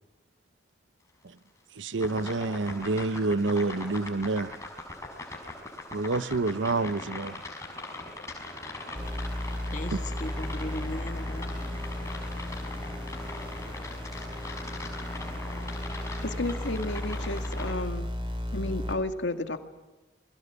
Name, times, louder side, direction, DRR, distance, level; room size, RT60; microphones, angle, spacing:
voice 1, 1.8-4.5 5.9-7.4, right 3 dB, 90° right, 0.9 m, -28 dB
sound 1, 2.0-17.7, left 2 dB, 15° left, 5.6 m, -40 dB
sound 2, 9.0-18.9, left 1 dB, 25° right, 4.6 m, -35 dB
voice 2, 9.7-11.8, left 1 dB, 40° left, 1.5 m, -38 dB
voice 3, 16.2-18.1 18.5-19.6, left 2 dB, 80° left, 2.1 m, -32 dB
29.0 x 21.5 x 8.3 m
head